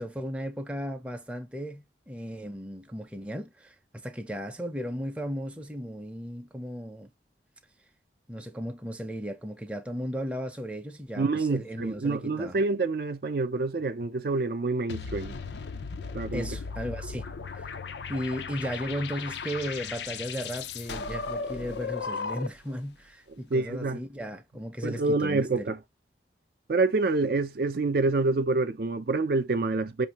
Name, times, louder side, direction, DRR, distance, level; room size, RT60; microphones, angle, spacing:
voice 1, 0.0-7.1 8.3-12.6 16.3-17.2 17.5-17.7 18.1-25.7, equal, 5° right, 0.5 m, -35 dB
voice 2, 11.2-15.4 16.1-16.5 23.5-24.0 24.8-25.8 26.7-30.1, right 3 dB, 55° right, 0.4 m, -27 dB
sound 1, 14.9-22.7, left 5 dB, 80° left, 0.5 m, -36 dB
5.7 x 2.6 x 2.8 m
head